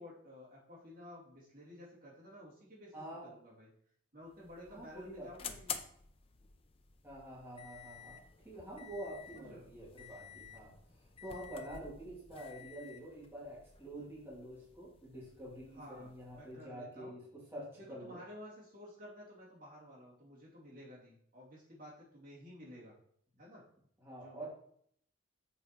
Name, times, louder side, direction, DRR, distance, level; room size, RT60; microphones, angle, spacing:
voice 1, 0.0-3.7 4.1-5.8 9.3-9.6 15.7-17.1 17.8-22.9 23.4-23.6 24.1-24.5, left 1 dB, 45° right, -6 dB, 2.5 m, -53 dB
voice 2, 2.9-3.3 4.7-5.5 7.0-8.2 8.4-10.7 11.2-18.2 24.0-24.5, right 1 dB, 10° right, -7 dB, 2.6 m, -47 dB
sound 1, 4.2-16.6, left 7 dB, 30° left, 0.5 m, -51 dB
7.0 x 5.0 x 4.5 m, 0.65 s
head